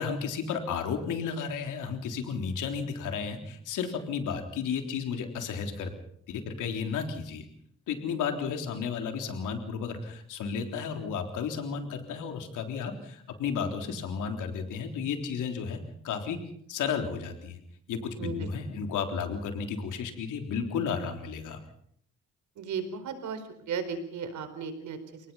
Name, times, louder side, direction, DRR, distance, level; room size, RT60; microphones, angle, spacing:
voice 1, 0.0-5.9 6.3-7.5 7.9-16.4 16.7-17.6 17.9-21.6, left 6 dB, 85° left, 5 dB, 3.8 m, -33 dB
voice 2, 18.2-18.5 22.6-25.0, right 5 dB, 75° right, 9 dB, 4.5 m, -35 dB
30.0 x 18.5 x 5.7 m, 0.68 s
cardioid pair, 90°, 30 cm